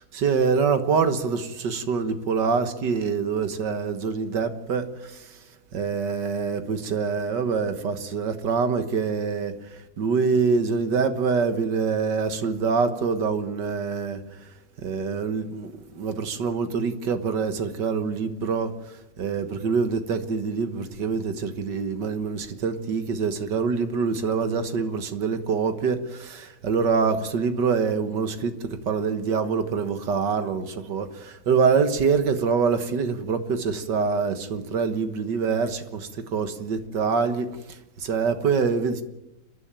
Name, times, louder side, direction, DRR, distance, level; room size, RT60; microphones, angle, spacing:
voice 1, 0.0-5.4 5.7-14.5 14.8-39.0, right 5 dB, 75° right, 2.1 m, -25 dB
30.0 x 11.0 x 9.0 m
omnidirectional pair, 1.9 m